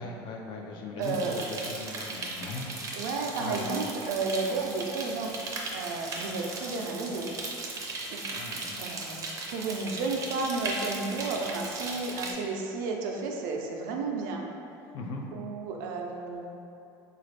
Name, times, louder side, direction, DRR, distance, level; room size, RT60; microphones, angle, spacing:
voice 1, 0.0-3.7 8.3-8.8 14.9-15.3, left 2 dB, 50° left, 1 dB, 0.5 m, -39 dB
sound 1, 1.0-12.3, right 3 dB, 30° right, 0.5 m, -37 dB
voice 2, 1.0-1.4 2.9-5.3 5.7-7.3 8.1-8.3 8.8-9.2 9.5-14.4 15.3-16.5, right 3 dB, 85° right, 1 dB, 0.5 m, -32 dB
4.0 x 2.4 x 3.2 m, 2.7 s
cardioid pair, 135°, 10 cm